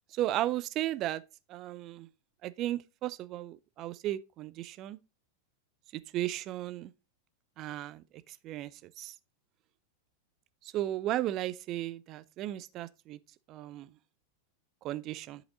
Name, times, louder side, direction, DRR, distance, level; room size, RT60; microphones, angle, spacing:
voice 1, 0.2-1.2 1.5-2.1 2.4-5.0 6.1-6.9 7.6-8.0 8.4-8.7 9.0-9.1 10.7-13.2 13.5-13.9 14.8-15.4, right 14 dB, 35° right, 0.6 m, -35 dB
11.0 x 5.1 x 3.8 m
figure-of-eight pair, 90°, 0 cm